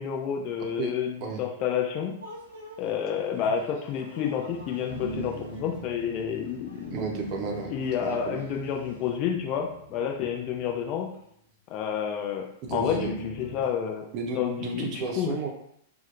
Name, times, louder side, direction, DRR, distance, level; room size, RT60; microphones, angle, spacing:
voice 1, 0.0-2.2 2.8-6.9 7.7-11.1 11.7-14.1 14.3-15.4, left 8 dB, 40° left, 1 dB, 0.3 m, -30 dB
sound 1, 2.2-9.2, equal, 85° right, 0.6 m, -50 dB
sound 2, 4.5-11.2 12.7-13.7, right 1 dB, 20° left, 1.1 m, -41 dB
voice 2, 6.9-7.7 8.0-8.4 12.6-13.1 14.1-15.5, right 4 dB, 40° right, 0 dB, 0.6 m, -33 dB
2.6 x 2.1 x 2.4 m, 0.72 s
figure-of-eight pair, 100°, 0 cm